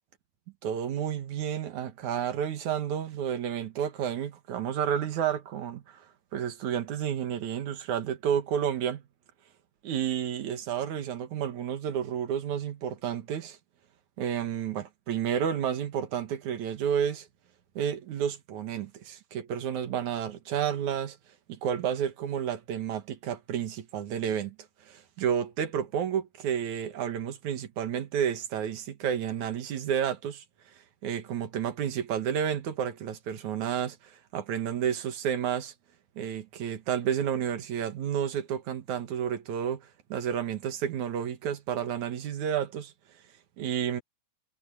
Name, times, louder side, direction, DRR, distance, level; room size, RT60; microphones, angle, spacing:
voice 1, 0.6-6.0 6.3-9.0 9.8-13.6 14.2-17.3 17.8-21.2 21.5-24.6 24.9-30.4 31.0-35.7 36.2-42.9 43.6-44.0, right 9 dB, 75° right, 3.0 m, -31 dB
omnidirectional pair, 3.4 m